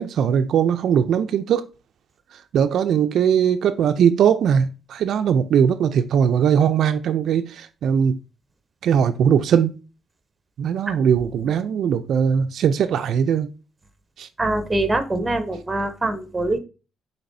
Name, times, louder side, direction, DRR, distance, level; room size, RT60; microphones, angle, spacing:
voice 1, 0.0-1.6 2.5-8.2 8.8-9.7 10.6-13.5 14.2-14.3, right 8 dB, 70° right, 0.3 m, -20 dB
voice 2, 14.4-16.6, right 2 dB, 15° right, 0.8 m, -23 dB
5.9 x 3.5 x 2.6 m
cardioid pair, 90°, 0 cm